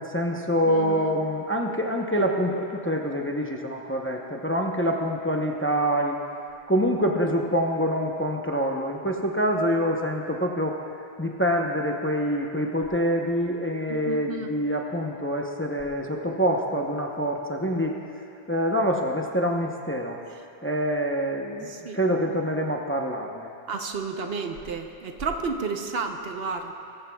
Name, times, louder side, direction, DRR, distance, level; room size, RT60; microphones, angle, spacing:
voice 1, 0.0-6.2 6.7-10.8 11.2-18.0 18.5-20.2 20.6-23.5, equal, 15° left, 1 dB, 0.7 m, -26 dB
voice 2, 0.7-1.1 13.9-14.6 21.7-22.0 23.7-26.7, right 4 dB, 70° right, 5 dB, 1.0 m, -31 dB
21.0 x 14.5 x 2.3 m, 2.7 s
omnidirectional pair, 1.1 m